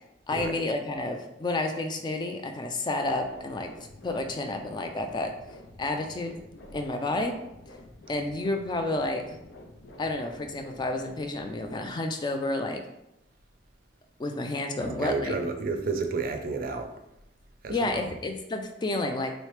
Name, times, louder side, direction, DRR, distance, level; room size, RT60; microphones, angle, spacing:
voice 1, 0.3-3.7 4.0-5.3 5.8-6.4 6.7-7.3 8.1-9.4 10.0-12.8 14.2-15.4 17.7-19.3, left 2 dB, 25° left, 5 dB, 0.3 m, -30 dB
sound 1, 3.0-11.8, left 1 dB, 90° left, 0.6 m, -49 dB
voice 2, 14.8-16.9 17.6-18.0, right 4 dB, 50° right, 5 dB, 0.4 m, -31 dB
3.2 x 3.1 x 3.1 m, 0.86 s
head